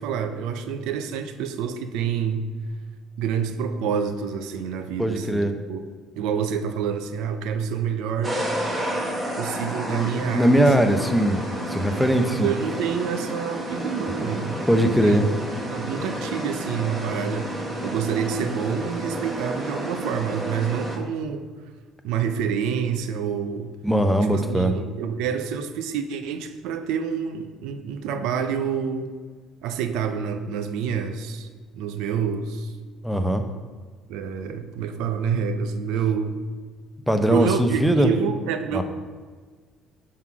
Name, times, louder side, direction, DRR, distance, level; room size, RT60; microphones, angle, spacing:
voice 1, 0.0-2.5 3.2-5.8 6.2-8.4 9.4-10.9 12.4-15.2 15.6-21.5 22.0-23.7 24.3-29.1 29.6-31.5 31.8-32.7 34.1-36.4 37.3-38.8, right 7 dB, 90° right, 8 dB, 0.5 m, -27 dB
voice 2, 5.0-5.5 9.9-11.4 11.7-12.5 14.7-15.3 23.8-24.7 33.0-33.5 37.1-38.1 38.7-38.8, equal, ahead, 6 dB, 0.6 m, -20 dB
sound 1, 8.2-21.0, right 1 dB, 25° right, 1.4 m, -31 dB
6.2 x 3.7 x 5.8 m, 1.5 s
cardioid pair, 125°, 0 cm